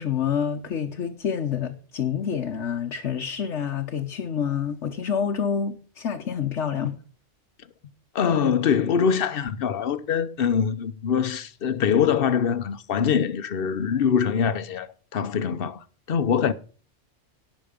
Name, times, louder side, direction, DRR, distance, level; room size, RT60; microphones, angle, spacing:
voice 1, 0.0-7.0, left 7 dB, 75° left, 1.3 m, -27 dB
voice 2, 8.1-16.5, left 7 dB, 55° left, 1.0 m, -23 dB
18.0 x 6.3 x 5.1 m
omnidirectional pair, 1.2 m